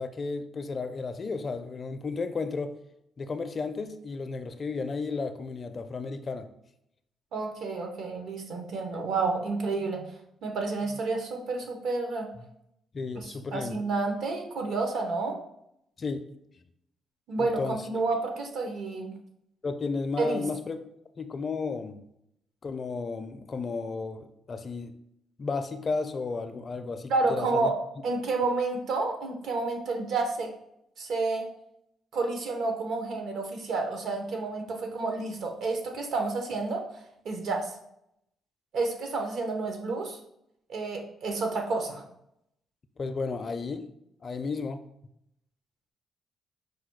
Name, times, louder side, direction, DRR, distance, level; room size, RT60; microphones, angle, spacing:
voice 1, 0.0-2.7 3.2-6.5 8.9-9.1 12.9-13.8 16.0-16.2 17.4-17.8 19.6-20.8 21.2-22.0 22.6-24.9 25.4-27.7 43.0-43.8 44.2-44.8, left 4 dB, 40° left, 9 dB, 0.4 m, -33 dB
voice 2, 7.3-10.1 10.4-12.3 13.1-15.4 17.3-19.1 20.2-20.4 27.1-27.8 28.0-30.5 31.0-31.5 32.1-37.7 38.7-40.2 40.7-42.0, right 3 dB, 70° right, 4 dB, 0.9 m, -30 dB
4.9 x 2.2 x 4.6 m, 0.78 s
cardioid pair, 90°, 0 cm